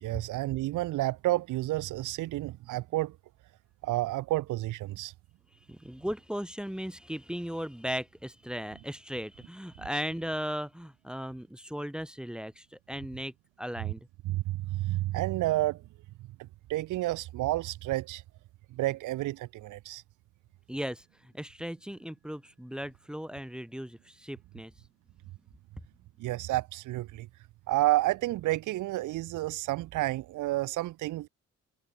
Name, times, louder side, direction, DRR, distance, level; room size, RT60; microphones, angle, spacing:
voice 1, 0.0-3.2 3.8-5.1 14.2-15.8 16.7-18.2 18.7-20.0 26.2-27.3 27.7-31.3, right 17 dB, 85° right, 1.0 m, -30 dB
voice 2, 5.5-14.1 20.7-24.7, equal, 5° right, 3.1 m, -37 dB
cardioid pair, 90°, 30 cm